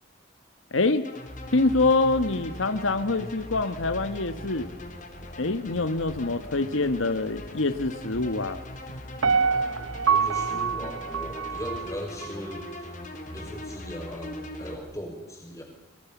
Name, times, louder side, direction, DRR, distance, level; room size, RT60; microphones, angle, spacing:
voice 1, 0.7-1.1 1.5-4.7 5.4-8.6, left 3 dB, 80° left, 11 dB, 1.2 m, -25 dB
sound 1, 1.0-14.8, left 1 dB, 40° left, 3.6 m, -40 dB
Piano, 9.2-12.3 12.7-12.8, right 6 dB, 90° right, 0.8 m, -26 dB
voice 2, 10.1-12.9 13.3-15.6, equal, 15° left, 2 dB, 5.6 m, -38 dB
26.0 x 23.0 x 7.2 m, 0.99 s
head